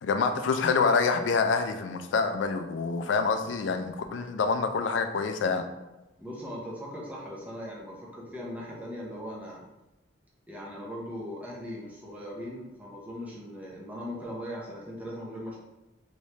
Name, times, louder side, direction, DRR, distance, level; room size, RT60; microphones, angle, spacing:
voice 1, 0.0-5.7, left 4 dB, 70° left, 7 dB, 0.3 m, -26 dB
voice 2, 6.2-9.6 10.5-15.6, equal, 10° right, -4 dB, 0.6 m, -39 dB
3.2 x 3.1 x 2.7 m, 1.0 s
head